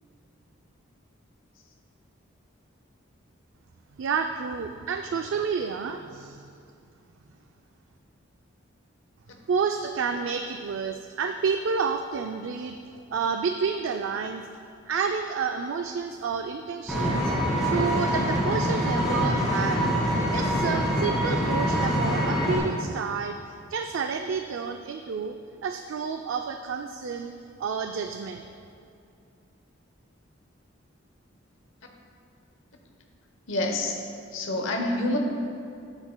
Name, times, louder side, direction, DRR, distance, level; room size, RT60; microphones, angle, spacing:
voice 1, 4.0-6.5 9.5-12.8 13.1-14.5 14.9-19.8 20.3-23.4 23.7-25.4 25.6-27.3 27.6-28.4, right 5 dB, 75° right, 6 dB, 0.4 m, -30 dB
Vehicle, 16.9-22.6, equal, ahead, 2.0 m, -25 dB
voice 2, 33.5-34.0 34.3-35.2, left 2 dB, 75° left, 2 dB, 0.9 m, -27 dB
12.5 x 8.8 x 2.2 m, 2.5 s
head